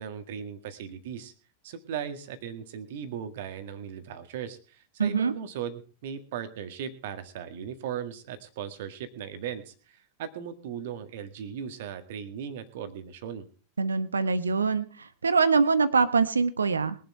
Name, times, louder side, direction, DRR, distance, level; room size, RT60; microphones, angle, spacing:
voice 1, 0.0-1.3 1.6-13.5, right 8 dB, 55° right, 9 dB, 1.8 m, -38 dB
voice 2, 5.0-5.3 13.8-17.0, right 5 dB, 75° right, 15 dB, 1.0 m, -24 dB
22.0 x 7.7 x 4.6 m, 0.39 s
figure-of-eight pair, 90°, 0 cm